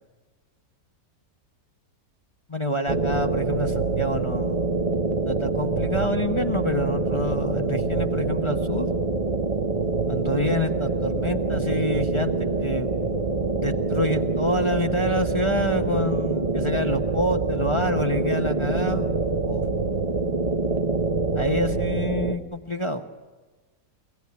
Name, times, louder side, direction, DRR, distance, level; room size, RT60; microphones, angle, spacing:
voice 1, 2.5-4.7 5.2-8.9 10.1-12.3 12.6-12.9 13.6-19.1 19.5-19.6 21.3-23.0, left 1 dB, 20° left, 4 dB, 0.9 m, -27 dB
sound 1, 2.9-22.4, right 3 dB, 25° right, 1.0 m, -25 dB
24.0 x 17.5 x 9.6 m, 1.3 s
omnidirectional pair, 1.8 m